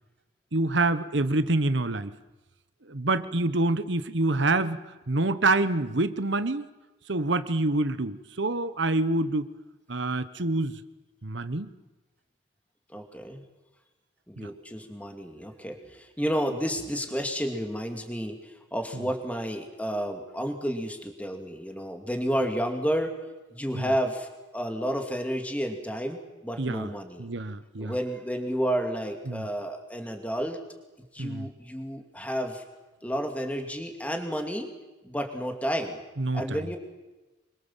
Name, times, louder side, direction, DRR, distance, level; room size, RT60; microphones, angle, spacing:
voice 1, 0.5-2.1 2.8-4.8 5.1-6.7 7.1-9.5 9.9-10.8 11.2-11.7 14.4-14.5 18.9-19.0 23.7-23.9 26.6-26.9 27.2-27.9 29.3-29.5 31.2-31.5 36.2-36.7, right 2 dB, 65° right, 12 dB, 1.2 m, -26 dB
voice 2, 12.9-13.4 14.3-23.2 23.5-27.3 27.8-30.6 31.1-32.6 33.0-34.7 35.0-36.0 36.3-36.8, equal, 5° left, 4 dB, 2.5 m, -31 dB
26.0 x 23.5 x 7.4 m, 1.1 s
head